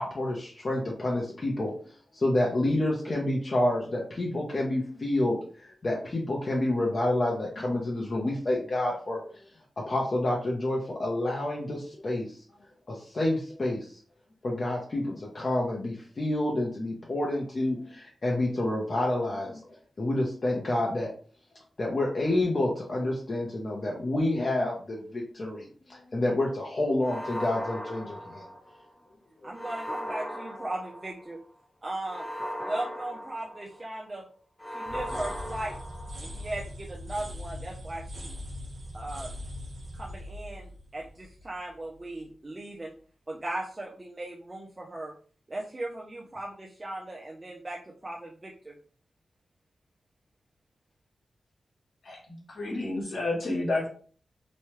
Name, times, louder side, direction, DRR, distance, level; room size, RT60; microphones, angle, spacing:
voice 1, 0.0-1.7 2.1-5.4 5.6-9.2 9.8-12.3 12.9-14.0 14.4-21.1 21.8-28.5 29.4-29.5, left 1 dB, 50° left, -2 dB, 0.7 m, -28 dB
sound 1, 27.0-28.9 29.5-31.4 32.1-33.9 34.6-36.5, equal, 10° left, 0.7 m, -38 dB
voice 2, 29.4-31.4 31.8-32.3 32.6-34.3 34.7-35.7 36.2-38.3 38.9-39.3 39.9-42.9 43.3-45.1 45.5-48.8, right 1 dB, 30° right, -2 dB, 0.5 m, -37 dB
sound 2, 34.9-41.7, left 1 dB, 75° right, 0.9 m, -41 dB
voice 3, 52.0-53.9, left 2 dB, 75° left, -2 dB, 1.3 m, -30 dB
3.0 x 2.2 x 3.0 m, 0.42 s
cardioid pair, 70°, 0 cm